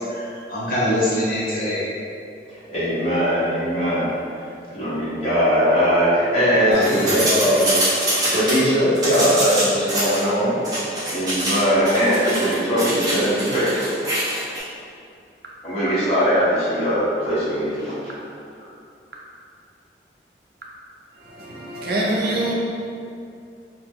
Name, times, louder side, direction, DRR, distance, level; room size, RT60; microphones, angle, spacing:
voice 1, 0.0-1.8 6.6-7.3, left 1 dB, 50° left, 0.6 m, -24 dB
voice 2, 2.7-4.2 4.7-7.7 8.3-10.5 11.1-13.7 15.6-18.1, equal, 35° left, 1.1 m, -20 dB
sound 1, 6.7-8.6 8.9-10.2 10.6-11.6 11.8-14.6, right 1 dB, 20° right, 0.8 m, -24 dB
voice 3, 21.2-22.5, right 1 dB, 60° right, 0.5 m, -25 dB
2.8 x 2.2 x 3.5 m
head